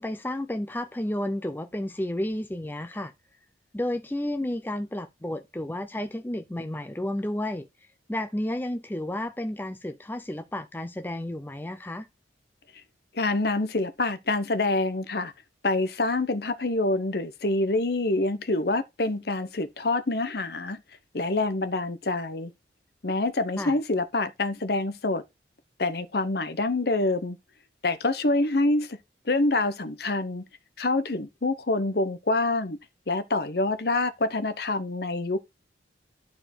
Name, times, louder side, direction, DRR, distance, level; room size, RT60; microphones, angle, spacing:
voice 1, 0.0-3.1 3.7-7.7 8.1-12.1 23.6-23.8, left 1 dB, 10° left, 0.5 m, -31 dB
voice 2, 13.1-15.3 15.6-20.8 21.1-22.5 23.0-25.2 25.8-27.4 27.8-29.0 29.3-30.4 30.8-32.8 33.1-35.4, left 2 dB, 55° left, 0.9 m, -26 dB
11.5 x 4.5 x 4.4 m
head